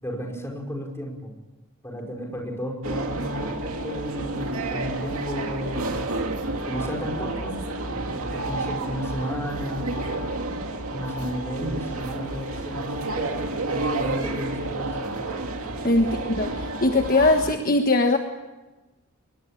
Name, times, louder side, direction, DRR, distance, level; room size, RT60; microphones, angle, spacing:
voice 1, 0.0-1.4 1.8-6.0 6.6-10.1 10.9-15.2 16.0-16.1, equal, 10° left, 1 dB, 5.1 m, -33 dB
sound 1, 2.8-17.5, right 2 dB, 70° right, 2.5 m, -30 dB
voice 2, 15.8-18.2, left 2 dB, 40° left, 4 dB, 1.4 m, -21 dB
22.5 x 21.0 x 8.9 m, 1.1 s
head